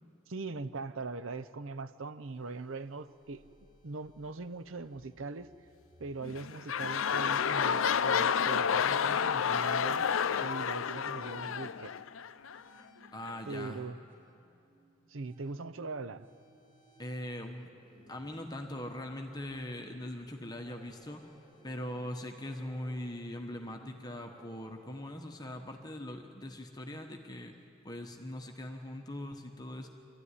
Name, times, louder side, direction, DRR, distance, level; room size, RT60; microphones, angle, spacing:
voice 1, 0.3-3.4 3.8-5.5 6.0-10.1 10.4-11.9 13.5-14.0 15.1-16.3, right 3 dB, 75° right, 0.7 m, -41 dB
sound 1, 2.3-22.0, equal, 45° right, 6.5 m, -63 dB
sound 2, 6.2-12.6 13.3-13.4, left 7 dB, 75° left, 0.5 m, -30 dB
voice 2, 13.1-13.8 17.0-17.7 18.1-21.2 21.6-27.5 27.8-29.9, left 1 dB, 20° left, 1.2 m, -41 dB
sound 3, 17.7-25.1, equal, 25° right, 5.5 m, -60 dB
24.0 x 13.5 x 9.9 m
head